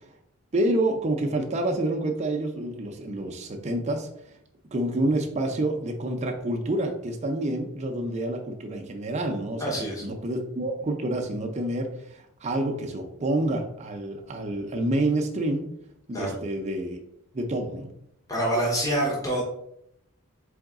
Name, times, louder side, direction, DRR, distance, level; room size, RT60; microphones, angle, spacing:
voice 1, 0.5-4.1 4.7-15.7 16.1-17.0 17.3-17.9, right 1 dB, 30° right, 3 dB, 0.5 m, -28 dB
voice 2, 9.6-10.0 16.1-16.4 18.3-19.4, right 1 dB, 15° left, -4 dB, 0.9 m, -26 dB
3.9 x 3.5 x 3.5 m, 0.77 s
head